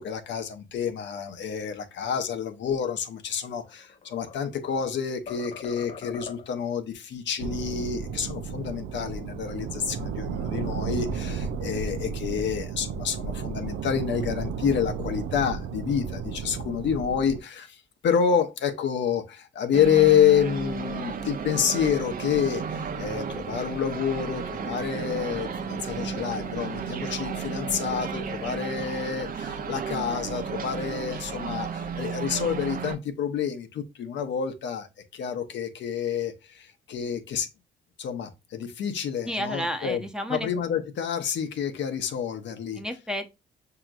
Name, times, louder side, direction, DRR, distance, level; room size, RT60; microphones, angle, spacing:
voice 1, 0.0-37.5 38.0-40.0 40.3-42.8, left 8 dB, 65° left, 0.8 m, -28 dB
sound 1, 3.6-4.9 5.3-6.7, left 6 dB, 35° left, 0.5 m, -42 dB
sound 2, 7.4-17.4, right 6 dB, 85° right, 0.5 m, -33 dB
sound 3, 19.7-33.0, right 5 dB, 45° right, 0.7 m, -33 dB
voice 2, 39.2-40.5 42.8-43.3, equal, 5° right, 0.8 m, -31 dB
5.8 x 2.9 x 2.4 m
cardioid pair, 90°, 20 cm